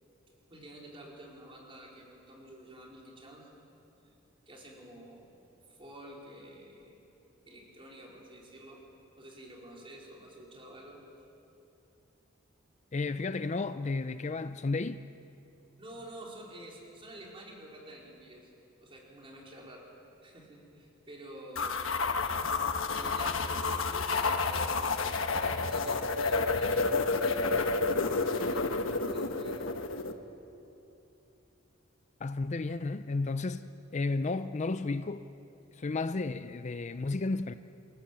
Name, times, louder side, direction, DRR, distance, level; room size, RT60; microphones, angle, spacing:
voice 1, 0.5-3.5 4.5-5.3 5.7-7.1 7.5-8.8 9.2-11.0 15.8-18.5 18.8-19.9 20.2-21.9 22.9-29.6, right 1 dB, 25° right, 4.5 m, -49 dB
voice 2, 12.9-15.0 32.2-35.2 35.7-37.5, left 3 dB, 35° left, 0.5 m, -33 dB
sound 1, 21.5-30.1, left 3 dB, 80° left, 1.2 m, -30 dB
26.0 x 18.0 x 7.7 m
head